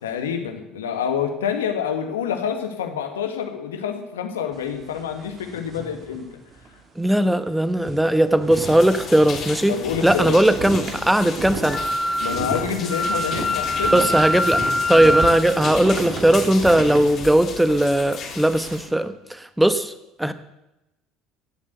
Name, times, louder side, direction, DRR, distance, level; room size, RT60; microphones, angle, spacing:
voice 1, 0.0-6.4 9.7-10.4 12.2-14.1, left 7 dB, 80° left, 6 dB, 1.8 m, -27 dB
sound 1, 4.5-6.8 7.1-7.3 7.6-18.8, right 4 dB, 40° right, 2.3 m, -34 dB
voice 2, 7.0-9.8 10.0-11.8 13.9-14.6 14.9-19.9 20.2-20.3, right 1 dB, 5° right, 12 dB, 1.2 m, -18 dB
sound 2, 8.5-18.9, left 5 dB, 50° left, 3.6 m, -35 dB
Wind instrument woodwind instrument, 11.6-15.4, left 1 dB, 15° left, 1.9 m, -23 dB
17.5 x 7.5 x 8.1 m, 0.94 s
hypercardioid pair, 65°, 0 cm